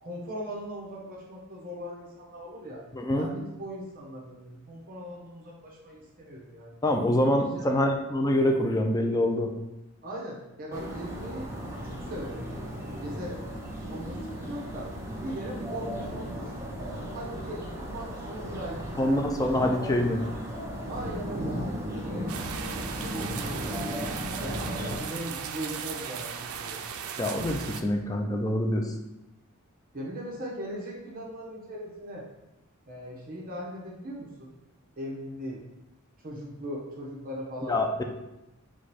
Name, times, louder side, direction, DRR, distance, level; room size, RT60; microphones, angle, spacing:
voice 1, 0.0-2.8 3.2-6.8 7.2-7.7 10.0-11.5 11.8-12.6 13.0-13.4 13.8-14.9 15.2-16.7 17.1-19.9 20.9-24.6 25.0-26.8 29.9-32.2 32.9-34.5 35.0-35.6 36.2-37.8, equal, 40° right, -4 dB, 0.9 m, -39 dB
voice 2, 2.9-3.3 6.8-9.5 19.0-20.2 21.4-21.7 27.2-28.9 37.7-38.0, left 1 dB, 15° left, 3 dB, 0.4 m, -25 dB
sound 1, 10.7-25.0, equal, 15° right, 0.7 m, -36 dB
sound 2, 22.3-27.8, right 7 dB, 85° right, 0.4 m, -37 dB
4.8 x 2.3 x 4.2 m, 0.94 s
head